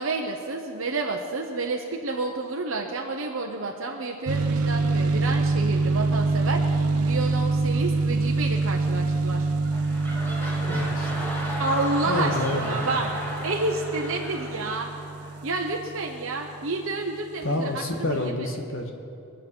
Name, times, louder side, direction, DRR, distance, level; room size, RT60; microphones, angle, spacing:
voice 1, 0.0-9.5 11.6-13.1 13.4-14.9 15.4-18.5, right 3 dB, 60° right, 1 dB, 1.0 m, -30 dB
sound 1, 4.3-16.7, right 3 dB, 90° right, 0.7 m, -26 dB
sound 2, 9.3-15.8 16.4-16.5, equal, 10° left, 2.1 m, -35 dB
voice 2, 10.7-11.3 12.1-12.8 17.4-18.9, left 2 dB, 60° left, 3 dB, 1.7 m, -29 dB
24.0 x 8.7 x 6.2 m, 2.7 s
head